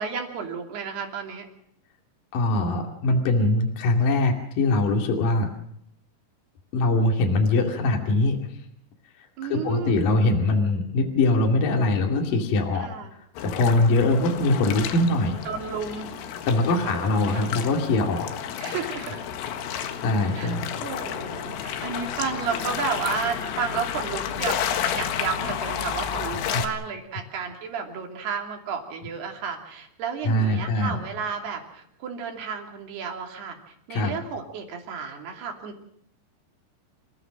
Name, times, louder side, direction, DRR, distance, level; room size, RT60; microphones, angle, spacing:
voice 1, 0.0-1.5 7.7-7.9 9.4-10.1 12.7-13.1 15.5-16.1 16.7-17.1 17.3-17.5 18.6-19.2 20.3-24.6 24.9-35.8, right 6 dB, 55° right, 3 dB, 4.5 m, -32 dB
voice 2, 2.3-5.5 6.7-8.4 9.4-12.9 13.4-15.4 16.5-18.3 20.0-20.7 26.5-26.6 30.2-31.0 33.9-34.1, left 2 dB, 50° left, 2 dB, 3.5 m, -22 dB
sound 1, 13.4-26.7, left 9 dB, 80° left, 4.2 m, -31 dB
28.5 x 17.0 x 6.4 m, 0.72 s
omnidirectional pair, 5.8 m